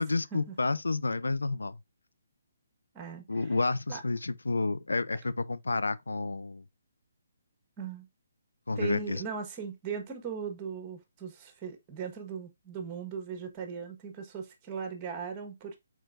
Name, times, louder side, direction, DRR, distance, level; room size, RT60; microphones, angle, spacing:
voice 1, 0.0-1.8 3.3-6.6 8.7-9.2, left 3 dB, 85° left, 0.4 m, -30 dB
voice 2, 2.9-3.5 3.9-4.0 7.8-8.1 8.7-15.7, right 6 dB, 25° right, 1.3 m, -38 dB
4.5 x 4.4 x 2.5 m
figure-of-eight pair, 145°, 0 cm